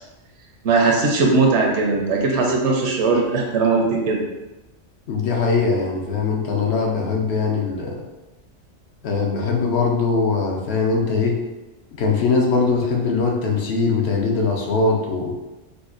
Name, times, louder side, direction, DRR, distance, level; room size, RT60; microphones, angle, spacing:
voice 1, 0.6-4.2, right 3 dB, 75° right, 0 dB, 0.9 m, -19 dB
voice 2, 5.1-8.0 9.0-11.4 12.0-15.4, left 4 dB, 65° left, 0 dB, 0.8 m, -21 dB
4.9 x 2.2 x 2.4 m, 1.1 s
omnidirectional pair, 1.2 m